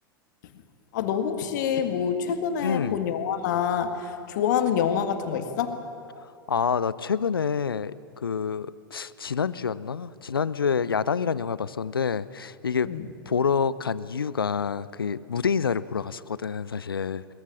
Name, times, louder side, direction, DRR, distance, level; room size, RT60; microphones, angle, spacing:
voice 1, 0.9-5.8 12.8-13.0, left 8 dB, 55° left, 7 dB, 2.0 m, -26 dB
voice 2, 2.6-3.0 6.5-12.9 13.3-17.3, left 6 dB, 75° left, 18 dB, 0.7 m, -27 dB
21.5 x 21.0 x 7.4 m, 2.5 s
figure-of-eight pair, 95°, 12 cm